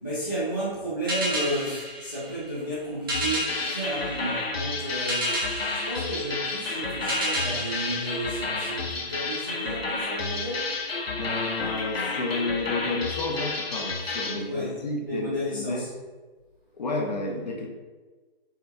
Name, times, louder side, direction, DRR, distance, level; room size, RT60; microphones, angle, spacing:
voice 1, 0.0-5.4 5.7-10.7 14.5-15.9, right 1 dB, 20° left, -9 dB, 0.4 m, -32 dB
sound 1, 1.1-8.9, equal, 25° right, 0.6 m, -33 dB
Random Sounds Breakbeat Loop, 3.1-14.4, left 3 dB, 80° left, 0.6 m, -31 dB
voice 2, 11.2-15.9 16.7-17.7, left 2 dB, 45° left, 1 dB, 0.7 m, -31 dB
4.4 x 2.2 x 3.5 m, 1.3 s
figure-of-eight pair, 150°, 30 cm